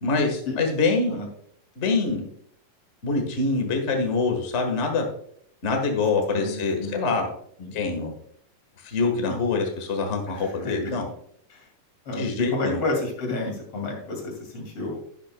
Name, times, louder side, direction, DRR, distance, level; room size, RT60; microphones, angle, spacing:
voice 1, 0.0-1.2 1.8-2.2 3.0-5.0 5.6-7.3 7.7-8.1 8.8-11.1 12.2-12.8, left 3 dB, 70° left, 3 dB, 0.6 m, -25 dB
voice 2, 6.3-7.0 7.6-7.8 10.3-10.7 11.5-11.7 12.0-12.2 12.5-15.0, left 2 dB, 45° left, 1 dB, 3.2 m, -31 dB
12.0 x 11.0 x 2.3 m, 0.65 s
omnidirectional pair, 3.8 m